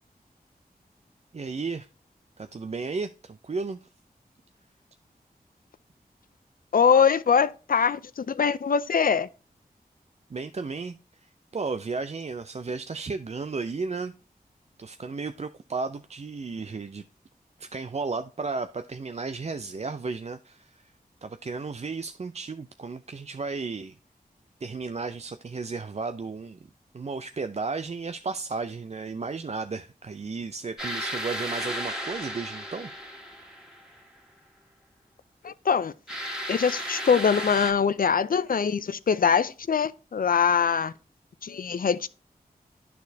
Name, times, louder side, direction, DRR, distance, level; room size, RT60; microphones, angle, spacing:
voice 1, 1.3-1.9 2.4-3.9 10.3-11.0 11.2-14.1 14.8-17.0 17.6-20.9 21.2-24.0 24.6-26.6 26.9-32.9, right 4 dB, 40° right, 0.4 m, -34 dB
voice 2, 6.7-9.3 35.4-35.9 36.5-40.9 41.4-42.1, left 6 dB, 60° left, 0.5 m, -23 dB
sound 1, 30.8-34.0 36.1-37.7, equal, 5° right, 1.8 m, -34 dB
11.5 x 4.2 x 2.7 m
cardioid pair, 50°, 16 cm